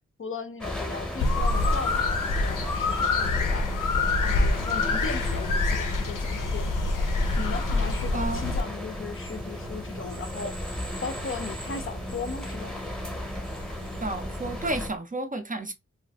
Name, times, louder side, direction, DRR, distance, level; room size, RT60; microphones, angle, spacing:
voice 1, 0.2-3.7 4.2-7.0 7.4-12.7, left 4 dB, 40° left, 0.5 m, -37 dB
sound 1, 0.6-14.9, left 1 dB, 5° left, 0.8 m, -35 dB
sound 2, 1.2-8.6, left 3 dB, 85° left, 0.6 m, -26 dB
sound 3, 3.8-15.0, right 3 dB, 75° right, 0.5 m, -46 dB
voice 2, 14.0-15.7, right 2 dB, 25° right, 0.4 m, -31 dB
2.6 x 2.4 x 3.3 m
wide cardioid pair, 125°, 31 cm